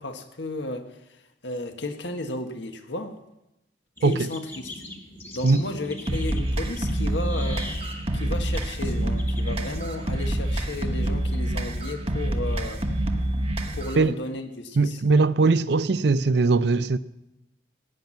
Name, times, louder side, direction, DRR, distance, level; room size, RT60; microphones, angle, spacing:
voice 1, 0.0-3.2 4.0-4.8 5.3-7.8 8.1-12.8 13.7-15.0, left 2 dB, 80° left, 1.5 m, -34 dB
sound 1, 4.0-10.9, left 1 dB, 15° left, 1.4 m, -42 dB
sound 2, 6.1-14.1, right 1 dB, 30° right, 1.1 m, -27 dB
voice 2, 14.8-17.0, right 3 dB, 70° right, 0.5 m, -20 dB
16.0 x 5.9 x 9.4 m
head